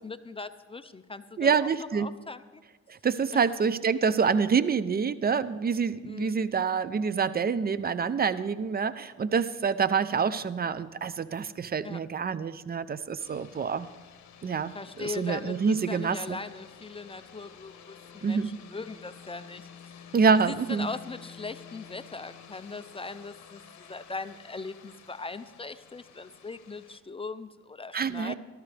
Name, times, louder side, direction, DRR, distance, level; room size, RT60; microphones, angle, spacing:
voice 1, 0.0-2.6 3.3-3.4 6.1-6.4 11.8-12.0 14.7-19.6 20.3-28.3, left 4 dB, 20° left, 12 dB, 0.5 m, -40 dB
voice 2, 1.4-2.1 2.9-13.9 14.4-16.4 18.2-18.6 20.1-20.9 27.9-28.3, right 6 dB, 30° right, 15 dB, 0.6 m, -27 dB
sound 1, 13.2-27.0, left 7 dB, 65° left, 1.3 m, -51 dB
17.5 x 13.0 x 3.4 m, 1.3 s
cardioid pair, 90°, 30 cm